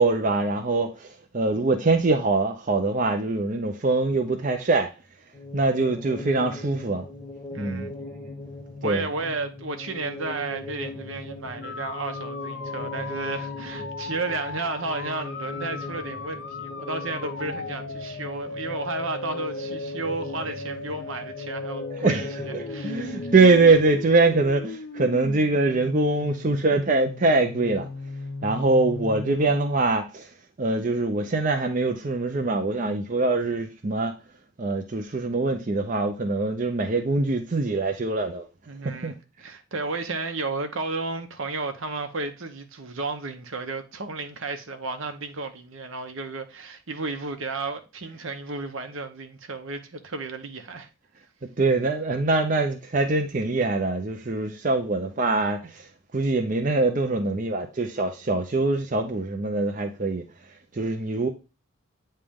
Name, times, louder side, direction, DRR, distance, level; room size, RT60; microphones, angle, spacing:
voice 1, 0.0-4.9 5.5-7.0 7.6-7.9 8.8-9.0 21.9-22.3 22.5-27.9 28.4-30.3 30.6-34.1 34.6-38.4 38.8-39.1 51.6-55.9 56.1-60.2 60.7-61.3, right 3 dB, 40° right, 0.6 m, -23 dB
sound 1, 5.3-24.1, left 2 dB, 20° left, 0.8 m, -39 dB
voice 2, 7.5-7.9 8.8-23.2 38.7-50.9, right 3 dB, 70° right, 1.0 m, -33 dB
sound 2, 11.6-29.6, left 3 dB, 60° left, 0.5 m, -37 dB
8.6 x 3.3 x 3.6 m
head